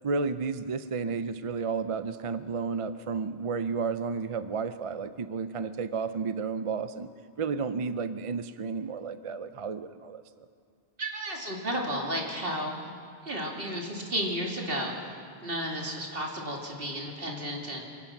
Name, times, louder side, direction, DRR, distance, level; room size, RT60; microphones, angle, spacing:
voice 1, 0.0-7.1 7.4-10.2, right 5 dB, 40° right, 12 dB, 0.5 m, -32 dB
voice 2, 11.0-12.7 13.2-15.1 15.4-17.8, equal, 65° right, -1 dB, 3.1 m, -33 dB
26.5 x 17.0 x 6.0 m, 2.5 s
omnidirectional pair, 1.1 m